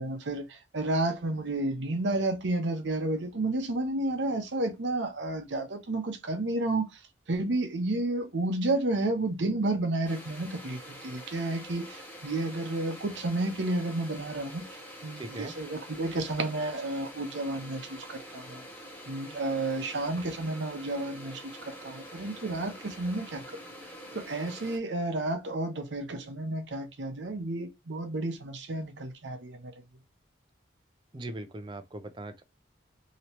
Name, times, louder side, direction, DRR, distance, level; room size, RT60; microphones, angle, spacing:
voice 1, 0.0-7.0 7.3-18.6 19.1-23.6 24.1-29.8, right 2 dB, 75° right, 0.7 m, -31 dB
sound 1, 10.0-24.8, equal, 10° left, 0.8 m, -46 dB
voice 2, 15.2-15.5 31.1-32.4, right 2 dB, 25° right, 0.4 m, -40 dB
3.1 x 2.9 x 2.9 m
head